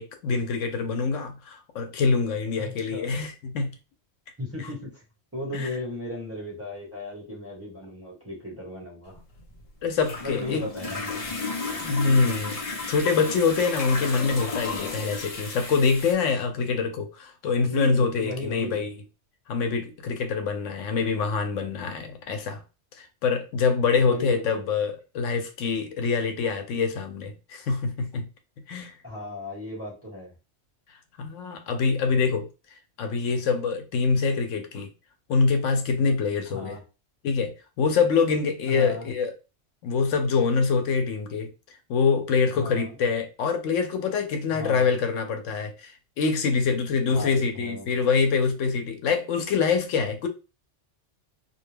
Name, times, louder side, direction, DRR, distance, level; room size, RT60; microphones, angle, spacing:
voice 1, 0.0-3.7 5.5-5.7 9.8-10.6 11.8-12.6 12.9-19.0 19.5-22.6 23.0-28.3 28.7-28.9 31.2-32.5 33.0-34.9 35.3-36.8 37.2-39.3 39.8-41.5 41.9-50.3, left 5 dB, 80° left, 0.9 m, -25 dB
voice 2, 2.6-3.2 4.4-5.0 5.3-9.2 10.2-11.0 17.6-18.9 23.9-24.6 29.0-30.3 36.5-36.8 38.7-39.1 42.6-43.0 44.5-44.9 47.1-47.9, left 1 dB, 10° right, 1.0 m, -36 dB
sound 1, 9.1-16.1, left 3 dB, 40° left, 0.5 m, -33 dB
2.4 x 2.1 x 3.2 m
omnidirectional pair, 1.3 m